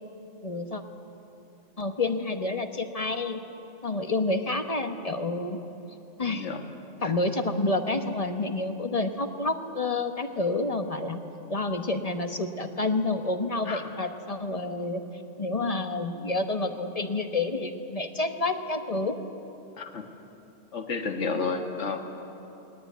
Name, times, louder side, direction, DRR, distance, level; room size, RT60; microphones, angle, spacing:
voice 1, 0.4-0.8 1.8-3.4 3.8-5.6 6.2-6.5 7.0-11.2 11.5-15.0 15.4-19.2, left 2 dB, 30° left, 7 dB, 1.0 m, -29 dB
voice 2, 6.3-6.6 7.0-7.1 13.6-13.8 19.8-20.1 20.7-22.0, left 4 dB, 55° left, 5 dB, 1.9 m, -31 dB
20.5 x 18.0 x 9.4 m, 2.9 s
omnidirectional pair, 1.5 m